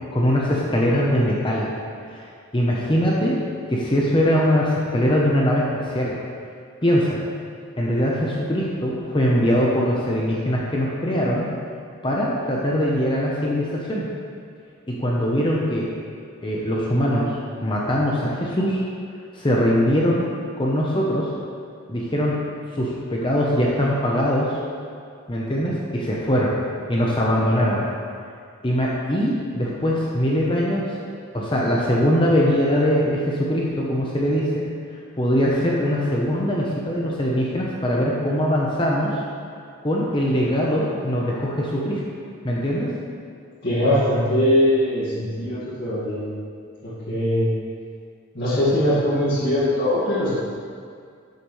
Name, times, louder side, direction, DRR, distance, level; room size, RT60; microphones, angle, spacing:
voice 1, 0.1-1.7 2.1-2.3 2.5-3.4 3.7-6.1 6.8-7.2 7.8-11.5 12.0-14.1 14.9-15.9 16.4-18.8 19.3-20.3 20.6-21.3 21.9-22.4 22.7-24.6 25.3-26.6 26.9-27.8 28.6-30.9 31.3-34.7 35.2-39.2 39.8-42.0 42.4-42.9, equal, 25° left, -4 dB, 0.8 m, -22 dB
voice 2, 43.6-46.2 46.8-47.5 48.3-50.3, left 1 dB, 50° left, -12 dB, 2.1 m, -21 dB
12.0 x 6.7 x 3.2 m, 2.2 s
head